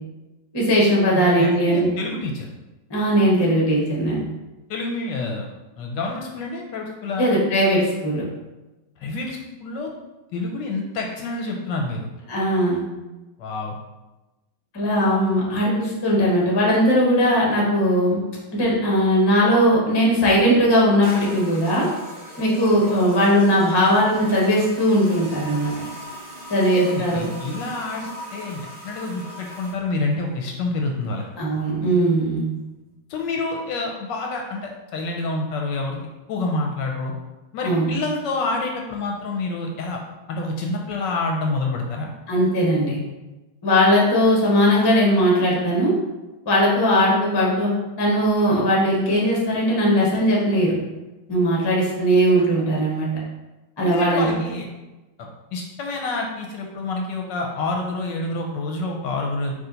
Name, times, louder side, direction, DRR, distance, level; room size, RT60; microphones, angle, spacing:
voice 1, 0.5-1.9 2.9-4.2 7.2-8.2 12.3-12.8 14.7-18.2 18.5-21.9 22.4-25.7 26.5-27.3 31.4-32.4 37.6-37.9 42.3-43.0 43.6-46.0 46.5-47.7 48.0-50.7 51.3-53.1 53.8-54.3, equal, 25° left, -4 dB, 0.5 m, -19 dB
voice 2, 1.2-2.5 4.7-5.5 5.8-7.3 9.0-9.9 10.3-12.1 13.4-13.7 26.7-31.3 33.1-36.0 36.3-37.1 37.5-40.0 40.3-42.1 53.8-54.7 55.2-59.5, left 3 dB, 75° left, 1 dB, 1.1 m, -28 dB
sound 1, 21.0-29.8, left 1 dB, 30° right, 1.5 m, -39 dB
4.9 x 2.6 x 3.8 m, 1.1 s
omnidirectional pair, 2.2 m